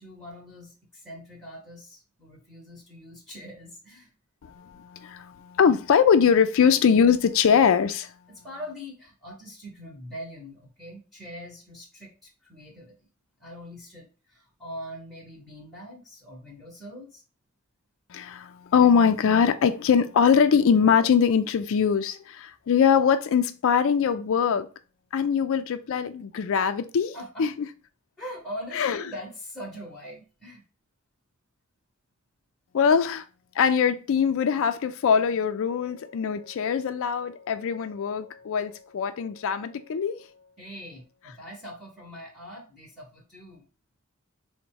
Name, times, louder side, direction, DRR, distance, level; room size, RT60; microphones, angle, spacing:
voice 1, 0.0-4.1 8.4-13.0 13.4-17.2 27.1-27.4 28.2-30.6 40.6-43.7, equal, ahead, 0.9 m, -42 dB
voice 2, 4.4-8.1 18.1-24.7 25.1-27.7 28.7-29.0 32.7-33.2 33.6-40.3, left 7 dB, 65° left, 0.4 m, -22 dB
4.0 x 2.1 x 4.5 m
head